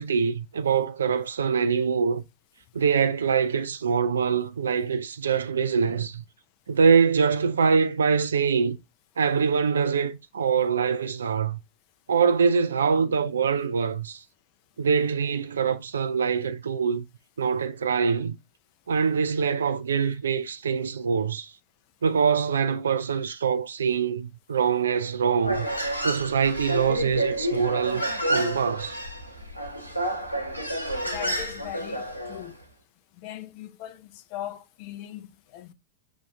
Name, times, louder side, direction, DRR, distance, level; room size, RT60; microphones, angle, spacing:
voice 1, 0.0-2.2 2.7-6.2 6.7-8.8 9.2-11.6 12.1-14.2 14.8-17.1 17.4-18.4 18.9-21.5 22.0-25.7 26.0-29.0, right 6 dB, 70° right, 0.3 m, -24 dB
Human voice, 25.4-32.5, right 1 dB, 85° left, 0.8 m, -29 dB
voice 2, 31.1-32.5 33.2-35.7, left 12 dB, 45° left, 0.4 m, -39 dB
5.3 x 2.4 x 3.3 m
figure-of-eight pair, 90°, 0 cm